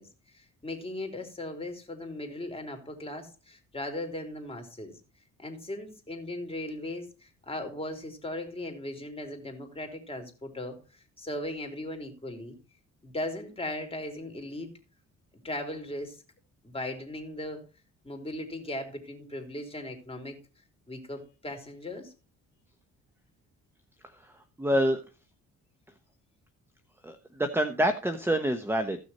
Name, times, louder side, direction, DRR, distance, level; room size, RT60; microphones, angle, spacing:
voice 1, 0.0-5.0 5.4-12.5 13.0-14.7 15.4-16.2 16.6-17.6 18.0-20.4 20.9-22.1, left 1 dB, 20° left, 2 dB, 3.4 m, -38 dB
voice 2, 24.6-25.0 27.0-29.0, equal, 10° right, 8 dB, 1.0 m, -27 dB
15.5 x 6.4 x 4.2 m, 0.32 s
cardioid pair, 90°, 30 cm